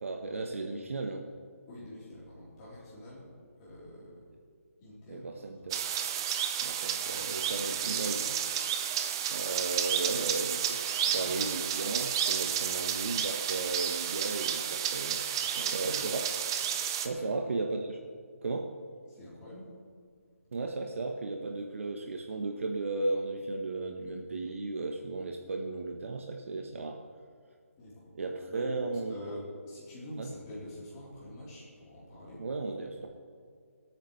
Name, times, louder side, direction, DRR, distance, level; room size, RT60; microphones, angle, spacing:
voice 1, 0.0-1.3 5.1-5.8 6.6-8.2 9.3-10.8 11.1-15.2 15.7-16.3 17.0-18.0 18.4-18.7 20.5-27.0 28.2-29.2 30.2-30.3 32.4-33.1, right 3 dB, 60° right, 3 dB, 1.1 m, -35 dB
voice 2, 1.7-3.3 3.6-4.3 4.8-5.7 7.1-8.3 10.9-11.4 15.4-16.0 17.1-17.3 19.1-19.7 20.5-20.6 27.8-28.0 28.5-32.5, left 1 dB, 20° left, -7 dB, 3.6 m, -46 dB
sound 1, 5.7-17.1, right 9 dB, 20° right, 0.5 m, -31 dB
24.5 x 8.9 x 3.2 m, 2.2 s
hypercardioid pair, 165°, 8 cm